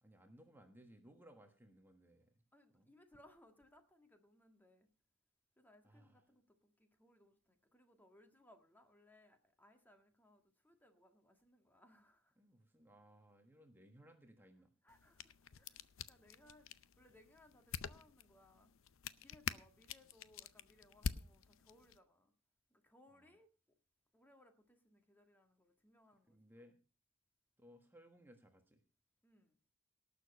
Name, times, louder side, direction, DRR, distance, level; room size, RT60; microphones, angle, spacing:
voice 1, 0.0-2.3 2.7-2.9 5.8-6.2 12.4-14.7 23.1-23.3 26.3-26.8 27.6-28.8, equal, 10° right, 1.4 m, -63 dB
voice 2, 2.5-4.9 5.6-12.4 14.8-18.7 19.1-22.3 22.7-23.5 24.1-26.7 29.2-29.6, left 1 dB, 10° left, 1.6 m, -67 dB
sound 1, 14.9-22.0, left 6 dB, 90° left, 0.6 m, -47 dB
18.0 x 6.9 x 5.3 m
head